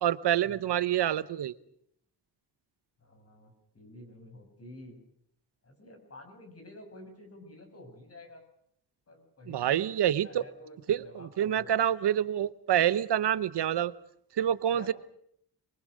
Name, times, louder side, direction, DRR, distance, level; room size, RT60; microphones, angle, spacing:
voice 1, 0.0-1.5 9.5-10.4 10.9-13.9 14.4-14.9, right 10 dB, 85° right, 15 dB, 1.0 m, -27 dB
voice 2, 3.0-5.1 5.6-8.4 9.1-9.9 10.2-11.8 14.7-14.9, left 2 dB, 35° left, 5 dB, 6.7 m, -50 dB
24.0 x 23.5 x 6.5 m, 0.70 s
wide cardioid pair, 110°, 40 cm